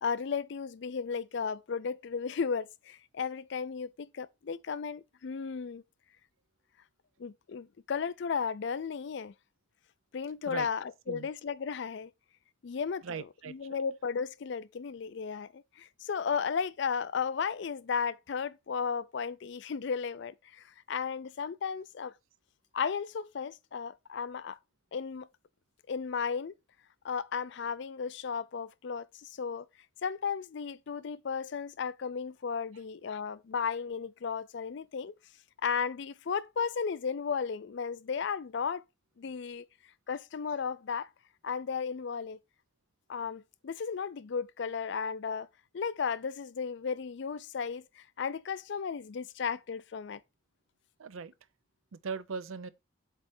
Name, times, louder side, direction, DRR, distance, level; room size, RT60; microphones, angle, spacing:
voice 1, 0.0-5.8 7.2-9.3 10.1-12.1 12.6-22.1 22.7-24.6 24.9-25.3 25.9-26.5 27.0-29.7 30.0-35.1 35.6-38.8 39.2-39.7 40.1-41.1 41.4-42.4 43.1-45.5 45.7-50.2, left 6 dB, 60° left, 0.4 m, -34 dB
voice 2, 13.0-13.8 51.0-51.3 51.9-52.7, right 5 dB, 80° right, 0.5 m, -39 dB
7.9 x 3.2 x 4.2 m
head